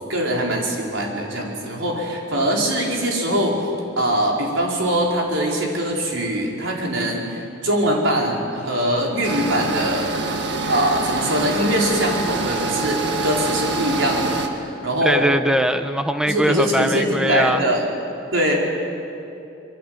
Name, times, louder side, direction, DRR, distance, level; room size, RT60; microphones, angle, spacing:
voice 1, 0.1-3.6 4.0-10.1 10.7-14.5 14.8-15.3 16.2-17.8 18.3-18.5, right 1 dB, 90° right, -1 dB, 4.9 m, -22 dB
sound 1, 9.2-14.5, right 3 dB, 65° right, 2.0 m, -25 dB
voice 2, 15.0-17.6, equal, 5° right, 8 dB, 1.0 m, -21 dB
26.0 x 23.0 x 8.0 m, 2.7 s
head